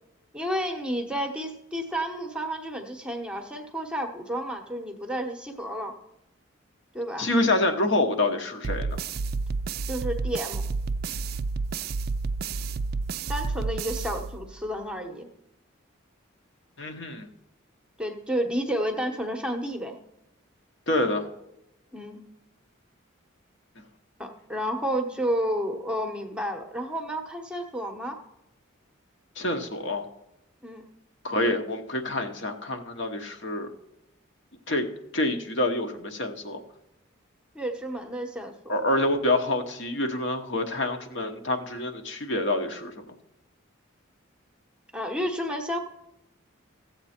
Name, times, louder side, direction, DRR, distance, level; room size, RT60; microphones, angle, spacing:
voice 1, 0.3-5.9 6.9-7.3 9.9-10.6 13.3-15.3 18.0-20.0 21.9-22.3 24.2-28.2 30.6-30.9 37.5-38.5 44.9-45.8, equal, 5° right, 4 dB, 0.9 m, -31 dB
voice 2, 7.2-9.0 16.8-17.3 20.9-21.3 29.4-30.0 31.2-33.7 34.7-34.9 35.1-36.6 38.7-43.1, left 2 dB, 60° left, 5 dB, 1.1 m, -27 dB
sound 1, 8.6-14.7, right 4 dB, 50° right, 0.3 m, -30 dB
15.5 x 7.8 x 4.4 m, 0.86 s
head